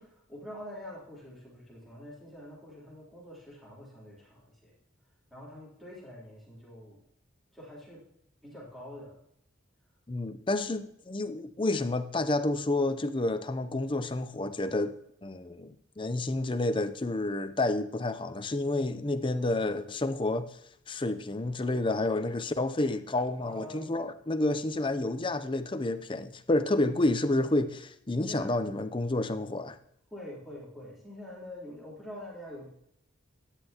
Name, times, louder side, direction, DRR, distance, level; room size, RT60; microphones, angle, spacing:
voice 1, 0.0-4.7 5.3-7.0 7.5-8.0 8.4-9.1 23.4-23.9 28.2-28.9 30.1-32.7, left 1 dB, ahead, 3.6 m, -45 dB
voice 2, 10.1-20.6 20.9-29.8, left 2 dB, 25° left, 0.6 m, -30 dB
13.5 x 10.0 x 2.9 m
head